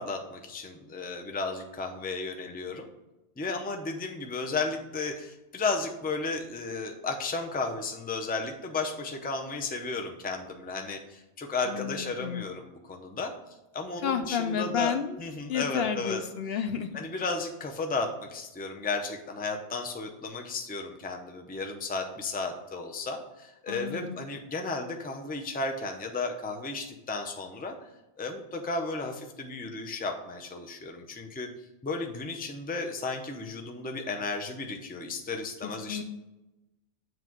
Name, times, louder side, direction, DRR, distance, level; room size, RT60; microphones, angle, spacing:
voice 1, 0.0-2.8 3.4-13.3 13.7-16.2 16.9-27.9 28.2-31.5 31.8-36.0, left 3 dB, 10° left, 4 dB, 0.5 m, -34 dB
voice 2, 11.7-12.4 14.0-15.2 15.5-17.0 23.7-24.2 35.9-36.0, left 7 dB, 65° left, 9 dB, 0.7 m, -31 dB
7.5 x 3.1 x 5.9 m, 0.99 s
omnidirectional pair, 1.2 m